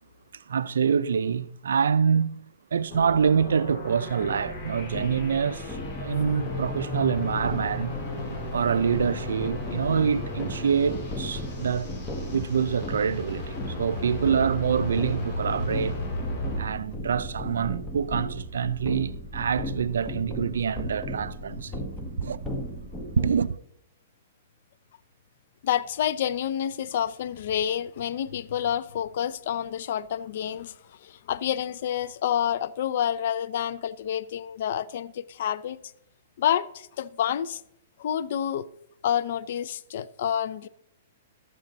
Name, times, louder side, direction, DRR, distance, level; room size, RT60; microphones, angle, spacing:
voice 1, 0.3-2.5 2.7-7.9 8.5-11.9 12.3-16.0 16.6-21.8 22.2-22.4 23.2-23.6, right 7 dB, 90° right, 0.4 m, -26 dB
sound 1, 2.9-16.6, left 1 dB, 25° left, 3.4 m, -35 dB
sound 2, 4.2-23.4, equal, 10° left, 1.3 m, -36 dB
voice 2, 25.6-30.7 31.0-35.8 36.4-37.6 38.0-38.7 39.0-40.7, left 10 dB, 60° left, 0.5 m, -28 dB
12.0 x 7.4 x 3.9 m
hypercardioid pair, 150°, 0 cm